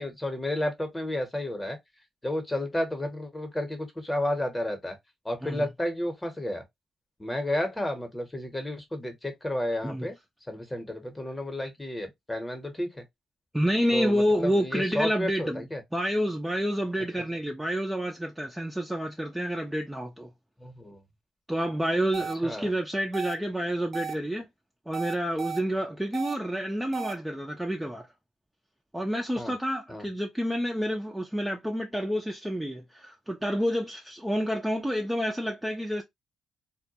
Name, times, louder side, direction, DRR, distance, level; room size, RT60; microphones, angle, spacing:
voice 1, 0.0-1.8 2.2-5.0 5.2-6.6 7.2-10.1 10.5-13.0 13.9-15.8 20.6-21.0 22.4-22.7 29.4-29.5 29.9-30.1, left 1 dB, 15° left, 0.9 m, -31 dB
voice 2, 13.5-15.7 15.9-20.3 21.5-24.5 24.9-28.1 28.9-36.0, equal, 5° right, 0.5 m, -29 dB
sound 1, 22.1-22.3 23.1-23.3 23.9-24.1 24.9-25.6 26.1-26.3 26.9-27.1, right 6 dB, 50° right, 0.6 m, -34 dB
2.2 x 2.1 x 2.7 m
cardioid pair, 90°, 0 cm